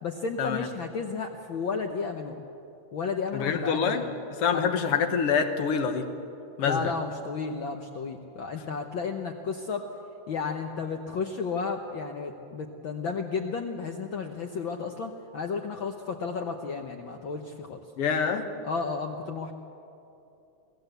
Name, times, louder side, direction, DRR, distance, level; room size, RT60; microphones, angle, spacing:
voice 1, 0.0-2.4 2.9-4.1 4.5-4.7 6.6-9.9 10.3-17.8 18.6-19.5, left 5 dB, 80° left, 4 dB, 1.1 m, -33 dB
voice 2, 3.3-4.1 4.4-6.1 6.6-6.9 18.0-18.5, left 6 dB, 60° left, 7 dB, 1.8 m, -26 dB
24.5 x 16.5 x 8.1 m, 2.7 s
omnidirectional pair, 3.6 m